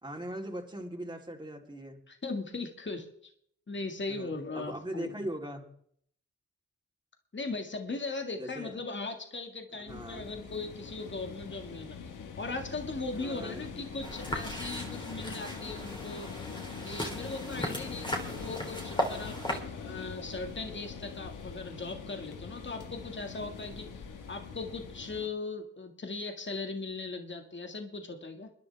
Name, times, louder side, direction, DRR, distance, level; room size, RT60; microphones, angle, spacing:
voice 1, 0.0-2.0 4.1-4.3 4.5-5.6 8.3-8.7 9.7-10.3 13.1-13.7 23.7-23.8, right 1 dB, 15° right, 1 dB, 3.3 m, -40 dB
voice 2, 2.1-3.3 3.7-5.2 7.3-12.1 12.4-16.3 16.8-24.0 24.3-28.5, left 3 dB, 40° left, 5 dB, 1.9 m, -39 dB
sound 1, 9.9-25.3, left 6 dB, 80° left, 1.5 m, -43 dB
sound 2, 14.0-19.6, equal, 15° left, 3.4 m, -37 dB
22.0 x 10.5 x 3.4 m, 0.65 s
supercardioid pair, 40°, 31 cm